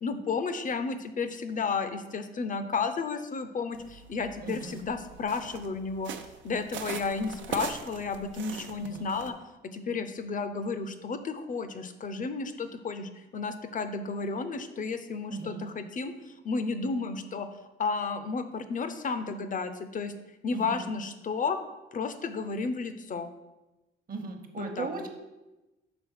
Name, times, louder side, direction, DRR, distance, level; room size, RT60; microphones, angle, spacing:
voice 1, 0.0-6.1 6.4-9.3 9.6-16.1 16.4-17.5 17.8-20.1 20.4-21.6 21.9-23.3 24.6-24.9, left 4 dB, 40° left, 10 dB, 0.6 m, -32 dB
sound 1, 3.7-9.3, right 7 dB, 70° right, 0.6 m, -41 dB
voice 2, 4.4-4.8 8.8-9.1 15.3-15.6 20.5-20.9 24.1-25.1, right 4 dB, 45° right, 5 dB, 1.1 m, -37 dB
6.0 x 3.9 x 5.6 m, 1.0 s
cardioid pair, 90°, 20 cm